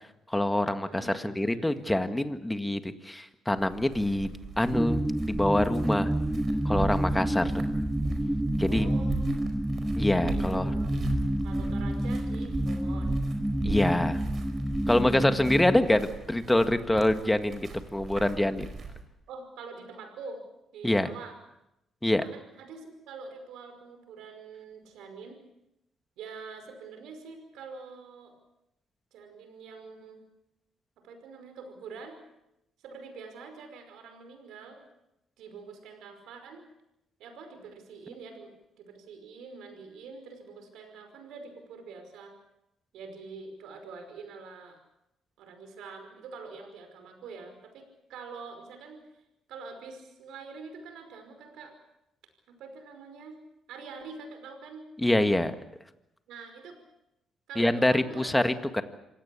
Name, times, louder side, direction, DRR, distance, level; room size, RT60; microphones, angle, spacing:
voice 1, 0.3-5.0 5.3-6.1 6.6-7.6 8.6-8.9 10.0-10.7 13.6-14.2 14.9-18.7 20.8-21.1 22.0-22.2 55.0-55.5 57.5-58.8, left 1 dB, 10° left, 9 dB, 1.9 m, -25 dB
voice 2, 0.8-1.8 8.7-9.2 10.3-11.0 11.4-13.2 19.3-20.4 20.7-21.3 22.2-25.4 26.2-28.3 29.1-30.2 31.0-32.2 32.8-34.8 35.4-36.6 37.2-38.5 38.8-42.3 42.9-44.8 45.4-49.2 49.5-51.7 52.5-53.4 53.7-54.8 56.3-56.8 57.5-58.3 58.7-58.8, right 4 dB, 85° right, 6 dB, 5.4 m, -45 dB
sound 1, 3.5-19.0, right 4 dB, 45° right, 4.8 m, -38 dB
sound 2, 4.7-15.8, right 1 dB, 5° right, 0.9 m, -29 dB
26.5 x 17.5 x 8.5 m, 0.88 s
cardioid pair, 90°, 0 cm